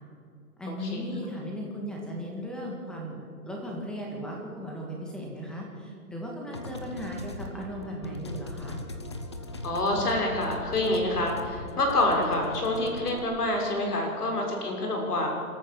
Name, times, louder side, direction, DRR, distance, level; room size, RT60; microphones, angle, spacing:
voice 1, 0.6-8.8, equal, ahead, -1 dB, 1.8 m, -37 dB
sound 1, 6.5-13.2, left 2 dB, 20° left, 0.6 m, -39 dB
voice 2, 9.6-15.3, left 1 dB, 75° left, 1 dB, 6.4 m, -27 dB
26.5 x 14.0 x 7.1 m, 2.4 s
hypercardioid pair, 170°, 46 cm